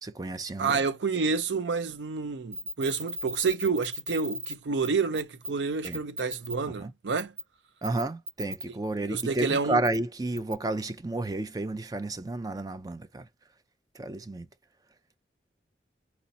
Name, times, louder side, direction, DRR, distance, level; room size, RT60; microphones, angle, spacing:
voice 1, 0.0-0.8 5.8-6.0 6.8-6.9 7.8-13.3 13.9-14.5, right 2 dB, 20° right, 0.4 m, -31 dB
voice 2, 0.6-7.3 9.1-9.8, right 5 dB, 90° right, 0.5 m, -29 dB
sound 1, 2.5-4.5 4.8-4.9 5.1-5.5 5.8-6.5 7.2-7.4 7.8-8.6 9.2-9.3 9.8-10.0 10.4-10.5, equal, 40° right, 1.0 m, -36 dB
4.1 x 2.8 x 4.1 m
head